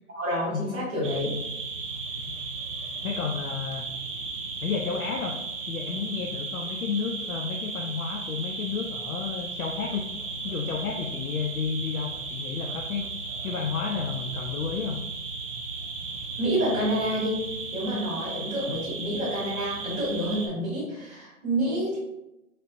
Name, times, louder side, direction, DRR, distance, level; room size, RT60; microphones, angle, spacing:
voice 1, 0.1-1.3 16.4-17.4 17.7-22.0, equal, 5° right, -15 dB, 0.6 m, -28 dB
sound 1, 1.0-20.5, right 3 dB, 60° right, 0.7 m, -35 dB
voice 2, 2.2-2.5 3.0-3.9 4.6-5.4 5.7-10.1 10.4-13.1 13.4-15.0 18.7-18.8, left 6 dB, 90° left, 2 dB, 0.5 m, -31 dB
3.2 x 2.9 x 2.5 m, 0.94 s
hypercardioid pair, 160°, 42 cm